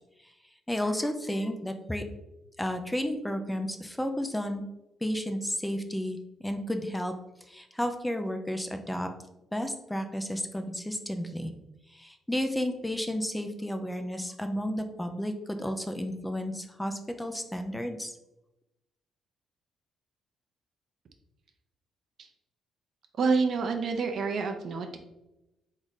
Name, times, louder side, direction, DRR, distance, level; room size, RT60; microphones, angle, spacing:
voice 1, 0.7-2.0 2.6-4.6 5.0-7.1 7.5-9.1 9.5-11.5 11.9-18.2, equal, 10° left, 6 dB, 0.5 m, -32 dB
voice 2, 23.2-25.0, right 4 dB, 60° right, 5 dB, 0.7 m, -28 dB
3.8 x 3.2 x 4.1 m, 0.93 s
cardioid pair, 90°, 0 cm